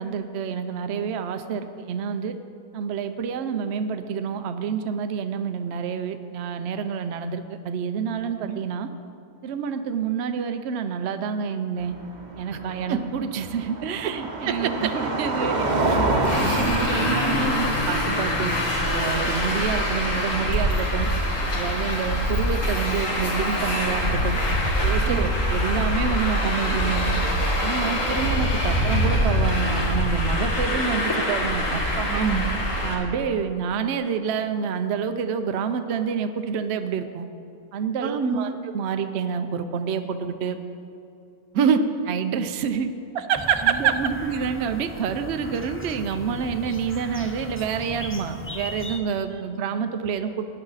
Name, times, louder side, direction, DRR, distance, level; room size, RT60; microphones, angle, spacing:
voice 1, 0.0-2.3 2.7-8.9 9.4-11.9 12.4-15.9 16.3-18.6 18.9-21.1 21.5-24.4 24.8-25.2 25.5-27.2 27.6-32.1 32.8-37.3 37.7-40.6 42.1-42.9 43.6-50.4, right 6 dB, 55° right, 8 dB, 0.8 m, -28 dB
Car passing by, 11.8-20.1, right 2 dB, 35° right, 1.0 m, -28 dB
voice 2, 14.5-14.9 15.9-16.0 25.1-25.3 32.1-32.7 38.0-38.5 41.5-41.8 43.1-44.0 49.3-49.4, right 7 dB, 75° right, 8 dB, 1.1 m, -23 dB
Traffic noise roadway noise, 16.2-32.9, left 1 dB, 60° left, 2.2 m, -24 dB
sound 1, 43.3-49.0, left 1 dB, 20° left, 0.4 m, -37 dB
17.5 x 10.0 x 4.0 m, 2.6 s
omnidirectional pair, 1.5 m